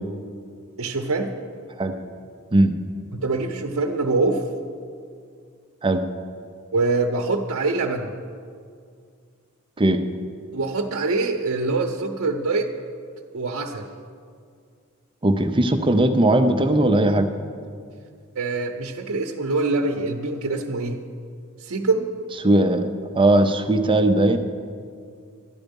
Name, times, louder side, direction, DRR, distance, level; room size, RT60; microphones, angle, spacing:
voice 1, 0.8-1.3 3.2-4.4 6.7-8.1 10.5-12.7 13.3-13.9 18.3-21.0 21.6-22.1, right 3 dB, 75° right, 2 dB, 0.7 m, -24 dB
voice 2, 15.2-17.3 22.4-22.9 23.1-24.4, right 1 dB, 25° right, 6 dB, 0.6 m, -18 dB
12.5 x 10.5 x 5.3 m, 2.2 s
head